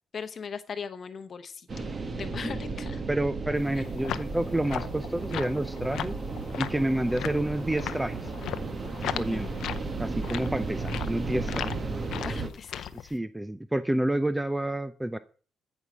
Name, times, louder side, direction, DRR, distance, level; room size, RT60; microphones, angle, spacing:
voice 1, 0.1-1.9 2.2-3.0 3.8-3.9 9.1-9.5 12.2-13.1, left 6 dB, 45° left, 11 dB, 0.8 m, -39 dB
sound 1, 1.7-12.5, right 3 dB, 35° right, 1.5 m, -34 dB
voice 2, 3.1-6.2 6.6-8.3 9.2-9.6 10.0-11.7 13.0-15.2, right 1 dB, 10° right, 12 dB, 0.5 m, -29 dB
sound 2, 3.5-13.1, left 10 dB, 75° left, 0.7 m, -38 dB
14.5 x 5.5 x 6.1 m, 0.41 s
cardioid pair, 90°, 0 cm